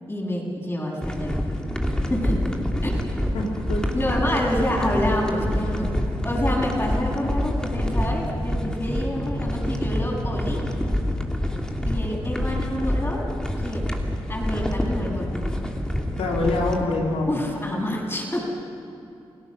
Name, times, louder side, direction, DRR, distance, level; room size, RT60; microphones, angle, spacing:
voice 1, 0.1-1.3 2.1-2.4 2.8-2.9 3.9-5.9 6.2-10.6 11.9-13.3 13.6-13.8 14.3-15.5 17.3-18.4, left 1 dB, 25° left, -2 dB, 7.8 m, -27 dB
sound 1, 1.0-16.8, left 1 dB, 5° left, 2.7 m, -26 dB
voice 2, 3.3-3.9 16.2-17.4, left 2 dB, 85° left, 0 dB, 2.8 m, -25 dB
28.5 x 17.0 x 6.4 m, 2.6 s
supercardioid pair, 50°, 10 cm